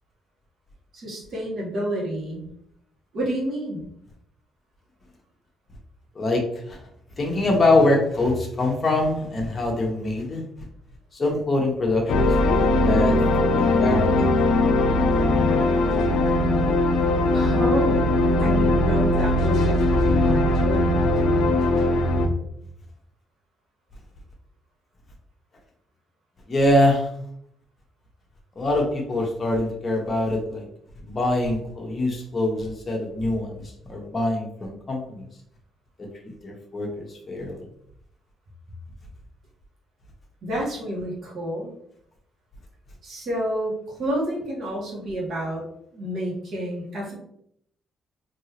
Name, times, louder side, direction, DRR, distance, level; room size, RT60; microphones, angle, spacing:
voice 1, 0.9-2.4 3.1-3.8 17.3-18.1 18.4-21.0 40.4-41.7 43.0-45.6 45.9-47.1, right 1 dB, 65° right, -3 dB, 1.5 m, -29 dB
voice 2, 7.2-10.4 11.2-14.3 26.5-27.1 28.6-30.6 31.0-33.6 33.9-35.2 36.4-37.6, left 2 dB, 30° left, 0 dB, 1.2 m, -24 dB
sound 1, 12.1-22.3, left 2 dB, 75° left, 0.4 m, -20 dB
3.6 x 2.9 x 3.0 m, 0.72 s
cardioid pair, 90°, 0 cm